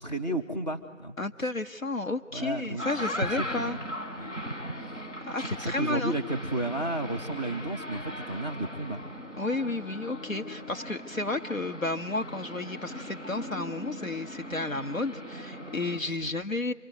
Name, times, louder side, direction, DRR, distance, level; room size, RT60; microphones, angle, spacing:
voice 1, 0.0-1.2 2.3-2.8 3.2-3.8 4.2-4.3 5.5-9.0 16.2-16.4, right 1 dB, 30° left, 6 dB, 2.2 m, -32 dB
voice 2, 1.2-3.8 5.3-6.1 9.4-16.7, left 2 dB, 80° left, 6 dB, 1.8 m, -32 dB
sound 1, 2.6-16.0, equal, 65° left, 5.6 m, -39 dB
27.0 x 21.5 x 9.4 m, 1.2 s
figure-of-eight pair, 180°, 40 cm